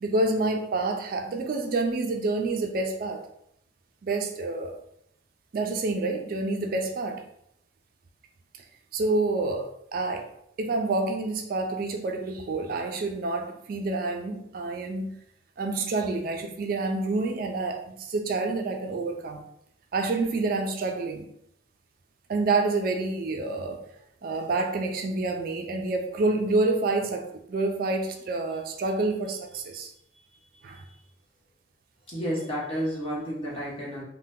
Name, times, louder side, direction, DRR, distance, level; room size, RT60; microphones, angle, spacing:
voice 1, 0.0-3.2 4.0-4.7 5.5-7.2 8.9-10.2 10.6-15.2 15.6-19.4 19.9-21.2 22.3-23.8 24.2-29.9 30.6-30.8, right 3 dB, 50° right, 3 dB, 0.3 m, -28 dB
voice 2, 30.5-30.9 32.1-34.0, equal, 30° left, -6 dB, 1.0 m, -32 dB
2.7 x 2.1 x 3.5 m, 0.73 s
head